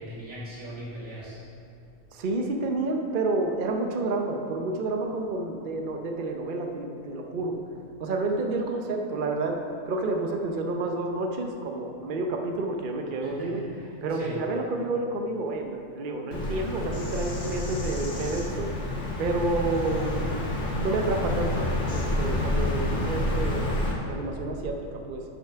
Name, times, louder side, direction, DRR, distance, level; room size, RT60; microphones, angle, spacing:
voice 1, 0.0-1.4 13.2-14.4, right 1 dB, 85° right, -7 dB, 2.7 m, -39 dB
voice 2, 2.1-7.6 8.0-13.6 14.0-18.7 19.2-23.7 24.0-25.2, right 2 dB, 50° right, 3 dB, 0.7 m, -30 dB
Bird vocalization bird call bird song, 16.3-23.9, left 1 dB, 70° left, 1.7 m, -29 dB
8.4 x 5.6 x 5.7 m, 2.6 s
omnidirectional pair, 1.4 m